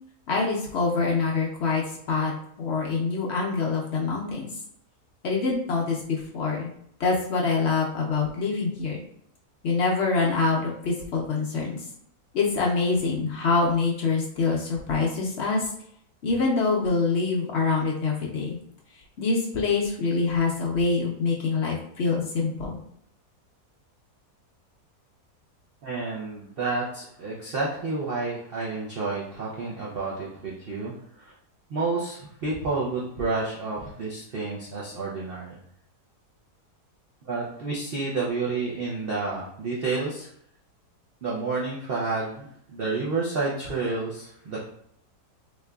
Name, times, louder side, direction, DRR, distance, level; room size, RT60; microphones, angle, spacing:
voice 1, 0.3-1.8 2.1-2.3 2.6-4.5 5.2-6.7 7.0-9.0 9.6-11.8 12.3-15.7 16.2-18.6 19.2-22.8, left 4 dB, 70° left, -2 dB, 0.6 m, -25 dB
voice 2, 25.8-31.3 31.7-35.6 37.3-40.3 41.2-44.7, right 3 dB, 70° right, -5 dB, 0.5 m, -30 dB
3.6 x 3.1 x 2.2 m, 0.69 s
omnidirectional pair, 1.7 m